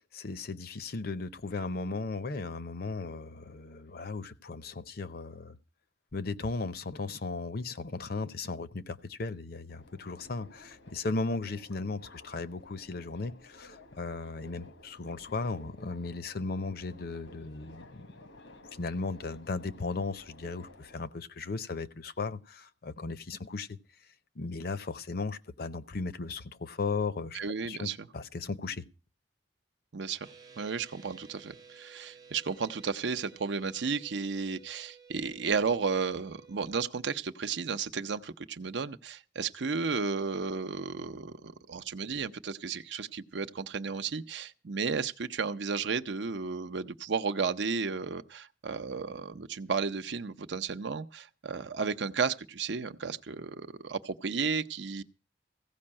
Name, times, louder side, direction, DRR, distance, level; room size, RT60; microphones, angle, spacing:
voice 1, 0.0-5.6 6.1-18.1 18.8-23.8 24.4-28.8, left 3 dB, 55° left, 0.7 m, -36 dB
Subway metro underground, 9.7-21.1, left 2 dB, 80° left, 1.2 m, -54 dB
voice 2, 27.3-28.1 29.9-30.3 30.6-55.0, right 5 dB, 70° right, 0.6 m, -33 dB
sound 1, 30.2-36.9, right 5 dB, 20° right, 0.7 m, -55 dB
16.0 x 5.4 x 8.7 m
head